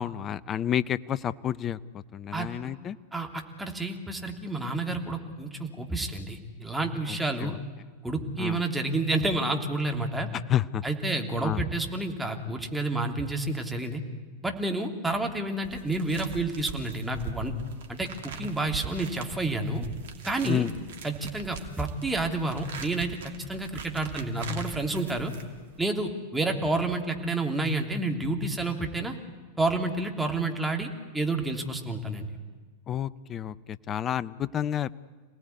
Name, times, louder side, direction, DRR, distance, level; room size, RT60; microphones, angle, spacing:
voice 1, 0.0-3.0 7.1-7.6 8.4-8.6 10.3-10.8 11.4-11.6 20.4-20.7 32.9-35.0, left 10 dB, 25° left, 18 dB, 0.8 m, -30 dB
voice 2, 3.1-7.5 8.0-10.3 10.8-14.0 14.4-17.5 17.9-19.9 20.2-20.7 21.0-25.3 25.8-29.2 29.6-32.3, right 2 dB, 5° right, 3 dB, 3.2 m, -29 dB
sound 1, 15.6-25.8, right 6 dB, 60° right, 2.7 m, -42 dB
27.5 x 18.5 x 9.7 m, 1.4 s
figure-of-eight pair, 90°, 0 cm